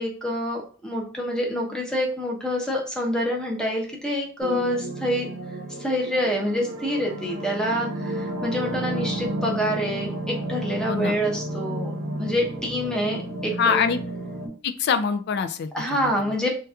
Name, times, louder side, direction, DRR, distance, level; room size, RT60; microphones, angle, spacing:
voice 1, 0.0-5.3 5.8-11.9 12.2-13.9 15.7-16.5, equal, 5° left, 0 dB, 0.7 m, -27 dB
sound 1, 4.4-14.5, right 1 dB, 75° right, 0.8 m, -32 dB
voice 2, 10.9-11.2 13.6-14.0 14.6-16.4, left 6 dB, 55° left, 10 dB, 0.3 m, -25 dB
2.9 x 2.2 x 3.5 m, 0.41 s
head